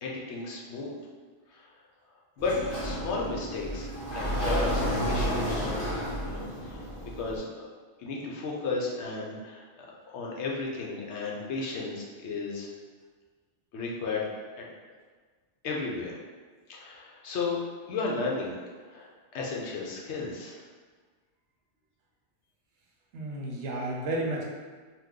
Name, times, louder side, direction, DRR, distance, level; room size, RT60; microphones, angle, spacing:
voice 1, 0.0-0.9 1.5-1.7 2.4-2.6 2.8-5.7 6.3-6.8 7.2-7.7 8.0-9.6 10.1-12.7 13.7-14.3 14.6-14.7 15.6-16.2 16.7-17.6 17.9-18.6 18.8-20.6, left 3 dB, 75° left, -3 dB, 0.9 m, -34 dB
Sliding door, 2.4-7.4, equal, 50° left, 1.2 m, -31 dB
voice 2, 23.1-24.4, right 1 dB, 75° right, -2 dB, 0.9 m, -32 dB
2.9 x 2.2 x 3.6 m, 1.5 s
omnidirectional pair, 1.2 m